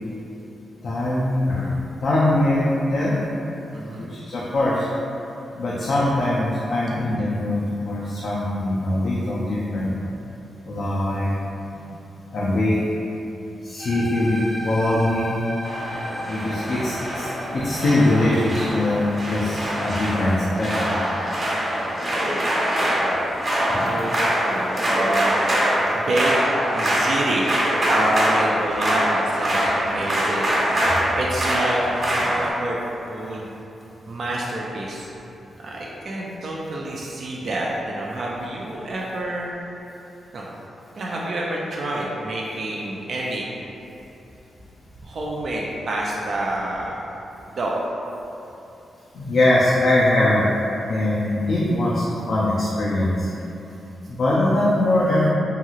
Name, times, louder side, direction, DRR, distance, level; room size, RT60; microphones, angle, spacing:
voice 1, 0.8-1.7 2.0-3.2 3.7-4.9 5.6-7.6 7.9-9.9 10.7-11.4 12.3-12.8 13.6-15.3 16.2-21.0 23.7-23.9 49.1-50.4 50.9-53.3 54.1-55.3, left 1 dB, 65° left, -7 dB, 0.4 m, -22 dB
voice 2, 3.7-4.1 17.0-17.1 19.6-19.9 23.8-25.3 25.9-27.5 27.9-30.5 31.2-31.8 32.1-32.8 33.1-33.5 34.1-35.1 35.6-39.5 40.3-40.5 40.9-43.5 45.0-47.1 47.5-47.8, right 1 dB, 60° right, -4 dB, 0.3 m, -28 dB
sound 1, 13.8-22.2, equal, ahead, 0.6 m, -36 dB
sound 2, 15.6-32.5, equal, 40° right, 1.0 m, -23 dB
2.8 x 2.7 x 2.4 m, 2.9 s
cardioid pair, 95°, 0 cm